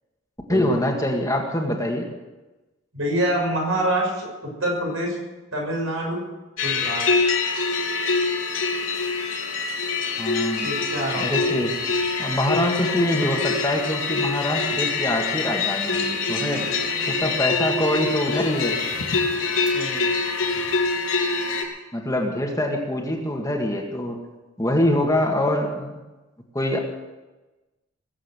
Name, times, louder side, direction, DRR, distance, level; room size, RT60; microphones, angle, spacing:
voice 1, 0.5-2.1 10.2-10.7 11.2-11.7 12.2-16.7 17.1-18.8 21.9-24.2 24.6-25.9 26.5-26.8, left 1 dB, 15° left, 1 dB, 1.9 m, -24 dB
voice 2, 2.9-5.2 5.5-6.3 6.6-7.0 10.6-11.6 19.7-20.1, right 1 dB, 80° right, 0 dB, 6.4 m, -26 dB
sound 1, 6.6-21.6, left 4 dB, 85° left, 3.4 m, -25 dB
20.5 x 8.3 x 8.1 m, 1.1 s
head